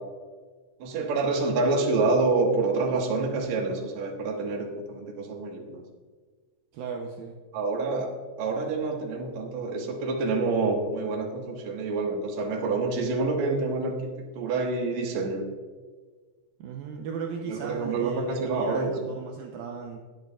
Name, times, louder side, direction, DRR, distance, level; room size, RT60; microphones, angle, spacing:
voice 1, 0.8-5.8 7.5-15.4 17.5-18.9, right 3 dB, 55° right, 1 dB, 2.3 m, -27 dB
voice 2, 6.7-7.4 16.6-20.0, right 5 dB, 75° right, 0 dB, 2.4 m, -36 dB
21.5 x 7.9 x 2.4 m, 1.4 s
omnidirectional pair, 4.6 m